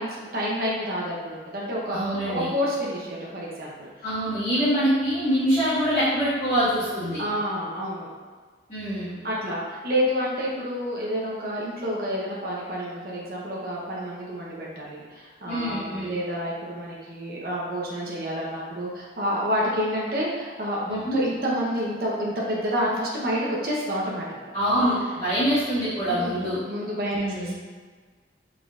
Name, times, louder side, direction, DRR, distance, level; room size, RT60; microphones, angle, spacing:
voice 1, 0.0-2.0 2.3-3.9 7.2-8.1 9.2-24.5 26.1-26.4 26.6-27.5, equal, 55° right, -5 dB, 0.8 m, -29 dB
voice 2, 1.9-2.5 4.0-7.2 8.7-9.2 15.5-16.1 20.9-21.2 24.5-26.6 27.2-27.5, equal, 35° left, -15 dB, 1.5 m, -24 dB
5.3 x 3.8 x 2.4 m, 1.5 s
head